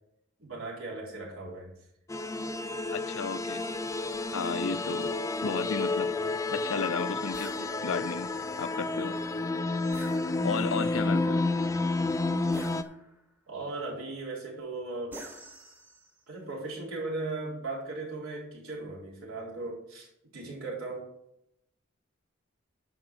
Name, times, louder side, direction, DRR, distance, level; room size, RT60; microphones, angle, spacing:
voice 1, 0.4-1.7 13.5-15.2 16.3-20.1 20.3-21.1, right 3 dB, 85° right, 3.9 m, -37 dB
sound 1, 2.1-12.8, left 2 dB, 15° left, 0.3 m, -30 dB
voice 2, 2.9-3.6 4.3-5.1 5.4-6.1 6.5-8.3 8.6-9.2 10.4-11.5, left 5 dB, 75° left, 0.5 m, -33 dB
sound 2, 7.3-7.7 9.9-10.7 12.5-13.3 15.1-16.2, right 1 dB, 10° right, 0.9 m, -47 dB
11.0 x 4.8 x 6.3 m
head